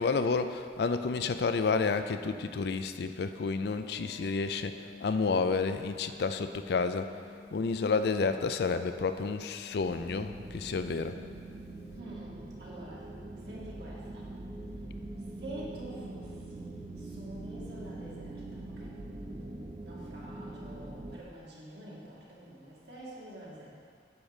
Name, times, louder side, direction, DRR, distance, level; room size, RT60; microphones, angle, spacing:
voice 1, 0.0-7.1 7.5-11.2, left 4 dB, 65° left, 9 dB, 0.4 m, -30 dB
Wind instrument woodwind instrument, 3.8-10.3, left 3 dB, 55° right, 1.5 m, -51 dB
sound 1, 9.8-21.2, right 2 dB, 25° right, 0.5 m, -43 dB
voice 2, 11.9-13.1 13.4-14.3 15.4-23.7, right 1 dB, 70° right, -7 dB, 2.4 m, -47 dB
9.7 x 3.9 x 7.1 m, 2.1 s
head